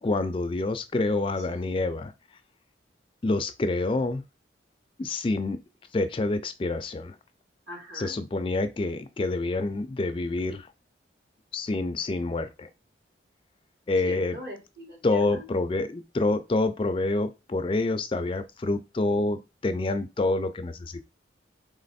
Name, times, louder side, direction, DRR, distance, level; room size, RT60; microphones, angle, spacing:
voice 1, 0.0-2.1 3.2-4.2 5.0-5.6 5.9-7.2 7.9-10.7 11.5-12.7 13.9-14.4 15.0-21.0, left 2 dB, 25° left, 0.3 m, -27 dB
voice 2, 7.7-8.2 14.0-15.0 15.3-15.5, equal, 65° right, 2.0 m, -41 dB
3.6 x 3.2 x 4.1 m
head